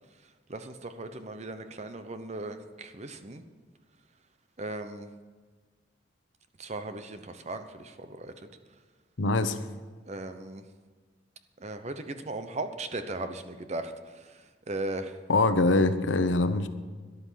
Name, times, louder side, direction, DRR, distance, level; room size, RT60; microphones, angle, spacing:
voice 1, 0.5-3.4 4.6-5.1 6.6-8.5 10.1-10.6 11.6-15.2, right 2 dB, 35° right, 9 dB, 0.9 m, -37 dB
voice 2, 9.2-9.6 15.3-16.7, left 2 dB, 85° left, 10 dB, 0.9 m, -23 dB
13.0 x 11.0 x 5.8 m, 1.5 s
head